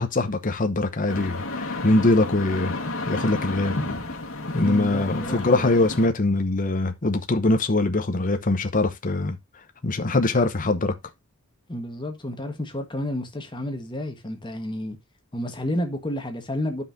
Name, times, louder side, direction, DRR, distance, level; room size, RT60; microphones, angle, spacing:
voice 1, 0.0-2.7 3.1-3.7 4.5-9.4 9.8-10.9, left 2 dB, 40° left, 0.9 m, -22 dB
sound 1, 1.1-6.1, left 2 dB, 65° left, 1.7 m, -31 dB
voice 2, 4.5-5.9 11.7-15.0 15.3-16.8, left 1 dB, 20° left, 1.5 m, -31 dB
12.0 x 5.6 x 2.7 m
head